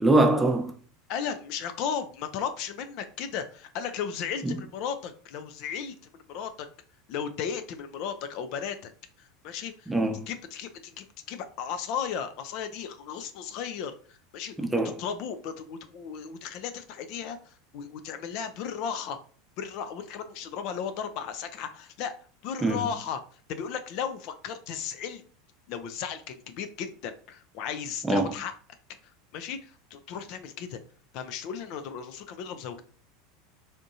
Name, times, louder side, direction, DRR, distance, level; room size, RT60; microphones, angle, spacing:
voice 1, 0.0-0.8 4.4-4.6 9.9-10.2 14.6-15.0 22.6-22.8 28.0-28.3, right 2 dB, 10° right, 0.6 m, -23 dB
voice 2, 1.1-5.9 6.3-6.7 7.1-8.9 9.2-9.9 10.3-14.5 15.0-19.2 19.6-22.1 22.4-23.2 23.5-25.2 25.7-28.5 29.0-30.8 31.1-32.8, left 7 dB, 60° left, 0.4 m, -35 dB
3.5 x 2.6 x 2.6 m
hypercardioid pair, 90°, 0 cm